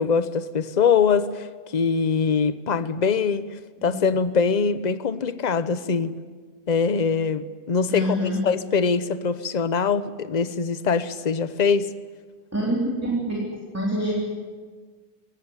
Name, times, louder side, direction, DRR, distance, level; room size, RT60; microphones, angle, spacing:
voice 1, 0.0-1.5 1.7-3.5 3.8-6.2 6.7-11.9, left 5 dB, 35° left, 13 dB, 0.8 m, -23 dB
voice 2, 7.9-8.4 12.5-13.5 13.7-14.1, equal, 10° right, -3 dB, 3.7 m, -25 dB
23.0 x 18.0 x 9.8 m, 1.5 s
omnidirectional pair, 1.6 m